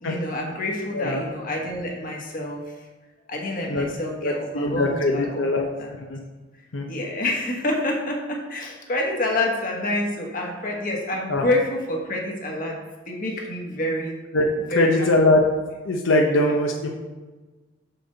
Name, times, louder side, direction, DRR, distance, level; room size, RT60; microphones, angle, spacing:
voice 1, 0.0-2.6 3.3-6.0 6.9-12.7 13.1-14.2 14.7-15.1, left 1 dB, 45° left, 0 dB, 1.3 m, -27 dB
voice 2, 4.2-5.7 6.1-6.2 6.7-6.8 11.3-11.4 14.3-14.5 14.8-15.5 15.9-16.9, left 2 dB, 80° left, 1 dB, 0.7 m, -21 dB
6.7 x 6.0 x 3.9 m, 1.2 s
head